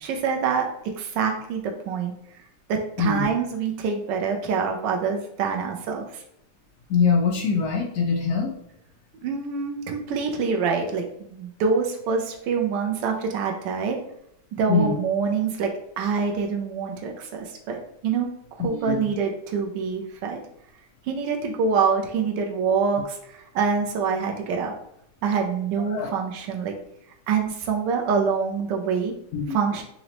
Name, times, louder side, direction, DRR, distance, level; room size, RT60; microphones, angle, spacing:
voice 1, 0.0-0.7 1.0-2.1 2.7-6.0 9.2-14.0 14.6-18.3 18.6-20.4 21.1-24.7 25.2-26.7 27.3-29.1 29.5-29.8, right 5 dB, 90° right, 2 dB, 1.3 m, -25 dB
voice 2, 3.0-3.3 6.9-8.5 14.7-15.0 18.6-19.1 25.9-26.2 29.3-29.6, left 5 dB, 70° left, 1 dB, 0.8 m, -23 dB
4.1 x 2.8 x 2.9 m, 0.75 s
omnidirectional pair, 1.9 m